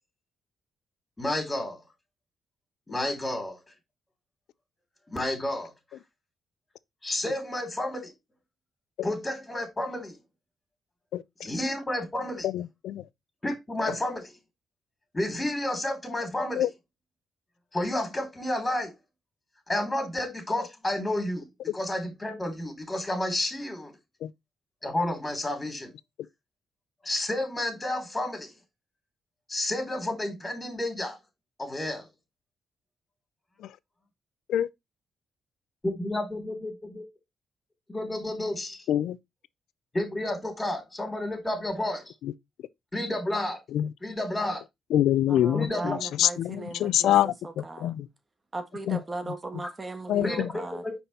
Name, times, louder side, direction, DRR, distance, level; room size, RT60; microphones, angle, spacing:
voice 1, 1.2-1.8 2.9-3.6 5.1-5.7 7.0-8.1 9.0-10.2 11.4-12.5 13.4-14.3 15.1-16.7 17.7-19.0 19.7-21.5 21.7-23.9 24.8-25.9 27.0-28.5 29.5-31.2 31.6-32.1 35.8-37.0 37.9-38.8 39.9-42.1 42.9-43.6 44.0-44.6 45.5-46.0 50.2-50.4 50.7-50.9, left 1 dB, 20° left, 3.1 m, -31 dB
voice 2, 11.1-11.5 12.4-13.1 13.9-14.0 16.6-16.7 24.2-24.3 33.6-33.8 34.5-34.7 38.9-39.2 42.2-42.3 43.7-43.9 44.9-48.1 48.9-49.0 50.1-50.5, left 11 dB, 80° left, 0.4 m, -26 dB
voice 3, 45.3-47.9 48.5-50.8, right 2 dB, 30° right, 1.5 m, -38 dB
5.3 x 4.3 x 4.1 m
supercardioid pair, 65°, 0 cm